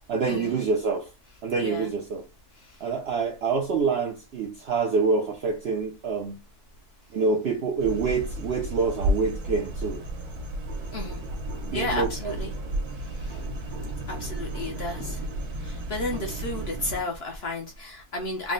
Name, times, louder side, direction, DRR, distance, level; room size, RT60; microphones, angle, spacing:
voice 1, 0.1-1.1 1.4-2.2 2.8-6.4 7.1-10.0 11.7-12.1, right 4 dB, 65° right, 0.6 m, -26 dB
voice 2, 1.6-1.9 10.9-11.2 11.7-12.5 13.2-13.4 14.1-15.2 15.6-18.5, left 2 dB, 55° left, 0.7 m, -32 dB
sound 1, 7.8-17.0, right 1 dB, 90° right, 1.4 m, -32 dB
3.6 x 2.0 x 3.7 m
omnidirectional pair, 1.6 m